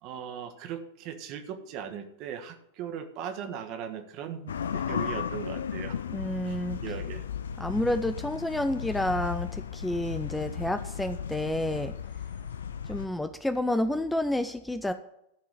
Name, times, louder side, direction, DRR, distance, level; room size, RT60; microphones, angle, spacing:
voice 1, 0.0-6.0 6.4-7.3, right 8 dB, 40° right, 6 dB, 1.5 m, -39 dB
sound 1, 4.5-13.1, left 8 dB, 65° left, 1.0 m, -35 dB
voice 2, 6.1-6.8 7.6-12.0 12.9-14.9, left 1 dB, 5° left, 10 dB, 0.6 m, -29 dB
14.0 x 4.7 x 8.8 m, 0.79 s
figure-of-eight pair, 90°, 0 cm